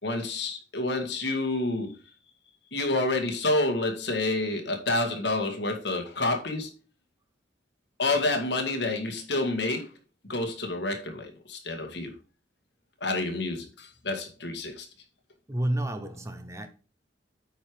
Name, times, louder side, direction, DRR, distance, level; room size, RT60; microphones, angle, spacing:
voice 1, 0.0-2.0 2.7-6.7 8.0-9.9 10.3-12.1 13.0-14.9, left 2 dB, 65° left, 2.0 m, -28 dB
voice 2, 15.5-16.7, right 1 dB, 15° right, 0.8 m, -30 dB
8.9 x 4.8 x 5.1 m
head